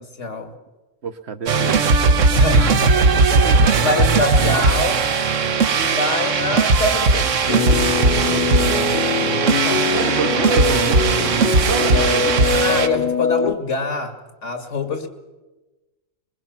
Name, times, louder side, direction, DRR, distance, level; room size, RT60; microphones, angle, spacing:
voice 1, 0.2-0.5 2.3-3.5 3.8-5.0 5.7-7.4 9.6-9.8 12.4-14.1 14.4-15.1, left 3 dB, 70° left, 7 dB, 2.3 m, -24 dB
voice 2, 1.0-1.9 3.4-3.6 4.6-5.1 8.3-9.0 9.9-12.4, right 5 dB, 60° right, 9 dB, 1.2 m, -28 dB
sound 1, 1.5-12.9, right 4 dB, 75° right, 1.4 m, -18 dB
sound 2, 7.5-13.5, left 5 dB, 45° left, 1.1 m, -22 dB
22.0 x 22.0 x 5.9 m, 1.1 s
omnidirectional pair, 1.3 m